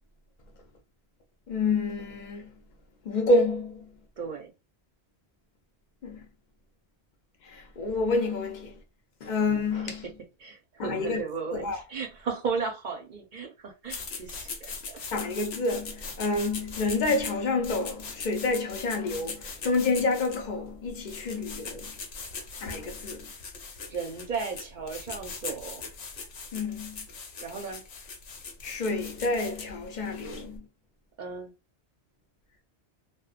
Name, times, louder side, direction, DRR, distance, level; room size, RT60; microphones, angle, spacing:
voice 1, 1.5-2.5 3.0-3.9 6.0-6.3 7.4-8.7 9.2-10.1 10.8-11.2 11.5-11.8 15.1-21.9 22.6-23.3 26.5-27.1 28.6-30.7, left 3 dB, 50° left, 0.6 m, -28 dB
voice 2, 4.2-4.5 10.4-15.0 23.9-25.8 27.4-27.8 31.2-31.5, right 5 dB, 55° right, 0.6 m, -35 dB
Spray bottle, 13.9-30.6, left 4 dB, 70° left, 0.9 m, -41 dB
2.9 x 2.0 x 2.4 m
omnidirectional pair, 1.1 m